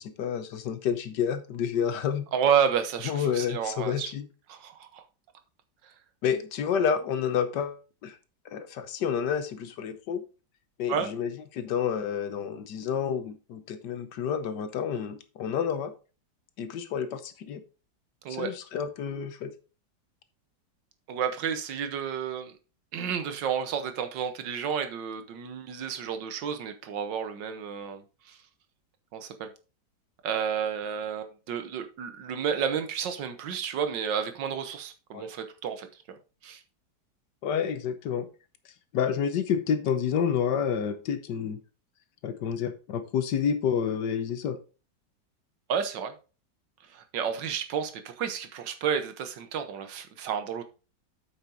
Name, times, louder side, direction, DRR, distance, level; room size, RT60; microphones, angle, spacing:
voice 1, 0.0-2.3 3.1-4.3 6.2-8.1 8.5-10.2 10.8-15.9 16.6-17.6 18.3-19.5 35.1-35.2 37.4-38.3 38.9-41.6 42.2-44.6, left 7 dB, 70° left, 10 dB, 1.5 m, -29 dB
voice 2, 2.3-4.1 4.5-5.1 5.8-5.9 10.9-11.1 18.2-18.5 21.1-22.5 22.9-28.4 29.1-29.5 30.2-36.2 36.4-36.6 45.7-46.1 46.9-50.6, right 7 dB, 80° right, 8 dB, 1.7 m, -31 dB
8.4 x 5.9 x 3.9 m, 0.34 s
omnidirectional pair, 1.9 m